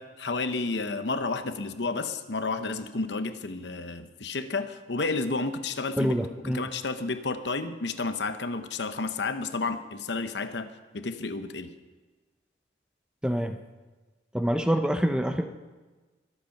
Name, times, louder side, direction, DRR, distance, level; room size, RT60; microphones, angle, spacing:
voice 1, 0.0-6.1 6.4-11.7, left 3 dB, 70° left, 10 dB, 0.9 m, -31 dB
voice 2, 6.0-6.6 13.2-13.6 14.3-15.4, equal, 5° right, 7 dB, 0.6 m, -26 dB
22.5 x 8.2 x 5.9 m, 1.3 s
head